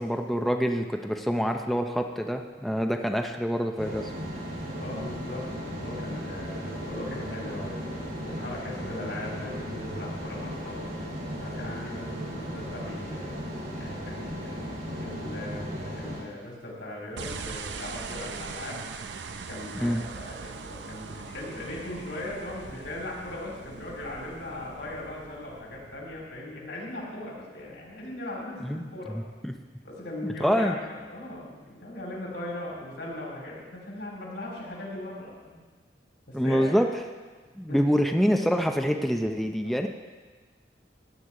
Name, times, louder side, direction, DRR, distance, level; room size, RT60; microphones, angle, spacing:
voice 1, 0.0-4.1 19.8-20.0 28.6-29.5 30.2-30.8 36.3-36.9 37.6-39.9, equal, ahead, 3 dB, 0.5 m, -26 dB
sound 1, 3.8-16.2, equal, 50° right, 4.1 m, -36 dB
voice 2, 4.7-7.8 8.2-10.9 11.4-13.4 13.8-14.6 15.0-18.8 19.5-29.2 29.8-35.6 36.3-36.7 37.7-37.8 39.6-39.7, left 1 dB, 90° left, -4 dB, 4.0 m, -39 dB
sound 2, 17.2-26.6, right 5 dB, 85° right, 0.6 m, -41 dB
16.0 x 9.6 x 3.8 m, 1.4 s
head